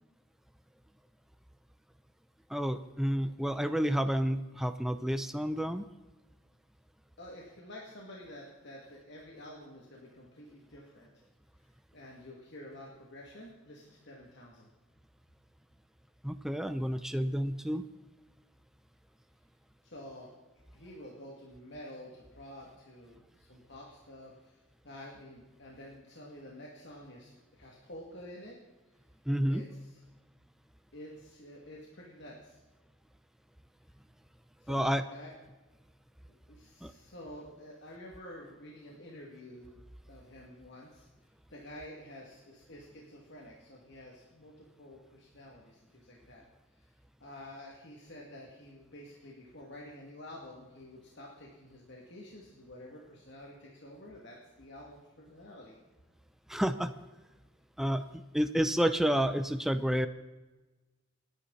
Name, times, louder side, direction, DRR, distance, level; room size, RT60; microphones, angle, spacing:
voice 1, 2.5-5.9 16.2-17.8 29.3-29.6 34.7-35.0 36.8-36.9 56.5-56.9 57.8-60.1, equal, ahead, 9 dB, 0.5 m, -30 dB
voice 2, 7.2-11.1 11.9-14.7 19.8-20.3 20.7-28.6 29.5-30.0 30.9-32.6 34.6-35.3 36.5-39.7 40.1-41.1 41.5-46.4 46.8-46.9 47.2-55.8, left 1 dB, 60° left, -2 dB, 2.4 m, -49 dB
28.5 x 10.5 x 4.1 m, 1.2 s
head